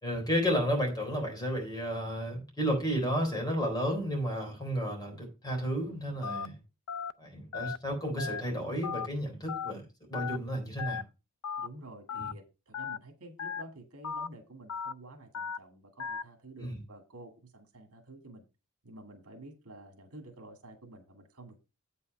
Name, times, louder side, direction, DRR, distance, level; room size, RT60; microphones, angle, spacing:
voice 1, 0.0-6.5 7.2-11.0 12.1-12.3 16.6-16.8, equal, 20° left, 3.8 m, -32 dB
Telephone, 6.2-6.5 6.9-7.1 7.5-7.8 8.2-8.4 8.8-9.1 9.5-9.7 10.1-10.4 10.8-11.0 11.4-11.7 12.1-12.3 12.7-13.0 13.4-13.6 14.0-14.3 14.7-14.9 15.3-15.6 16.0-16.2, left 6 dB, 90° left, 0.5 m, -36 dB
voice 2, 11.6-18.4 18.8-21.6, right 2 dB, 85° right, 1.9 m, -50 dB
8.3 x 5.6 x 5.3 m
head